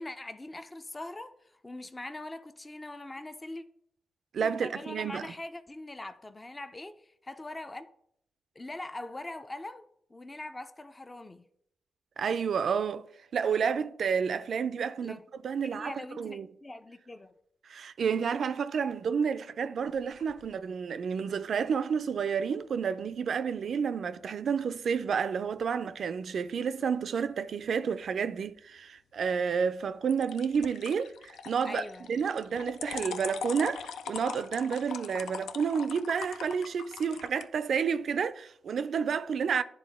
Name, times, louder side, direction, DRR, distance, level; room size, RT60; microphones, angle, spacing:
voice 1, 0.0-3.6 4.4-7.9 8.6-11.4 15.0-15.2 15.6-17.3 31.6-32.1, left 2 dB, 25° left, 0.5 m, -42 dB
voice 2, 4.3-5.3 12.2-13.1 13.3-16.5 17.7-39.6, right 6 dB, 70° right, 0.3 m, -30 dB
sound 1, 19.8-20.5 30.1-37.5, left 7 dB, 85° left, 0.3 m, -41 dB
10.0 x 3.7 x 3.5 m
supercardioid pair, 55°, 0 cm